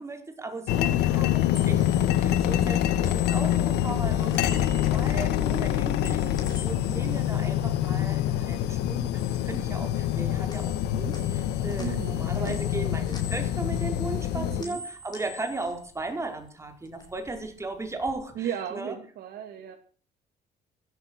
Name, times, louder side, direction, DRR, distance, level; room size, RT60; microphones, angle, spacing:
voice 1, 0.0-18.9, right 2 dB, 15° right, 5 dB, 4.7 m, -36 dB
sound 1, 0.7-14.6, left 12 dB, 85° left, 1.6 m, -26 dB
sound 2, 1.5-8.5 8.8-10.2 10.5-16.5 16.8-18.1, left 4 dB, 25° left, 7.6 m, -46 dB
voice 2, 11.8-12.7 14.3-14.8 18.3-19.8, right 9 dB, 65° right, 4 dB, 2.9 m, -36 dB
16.0 x 13.5 x 6.3 m, 0.43 s
cardioid pair, 110°, 17 cm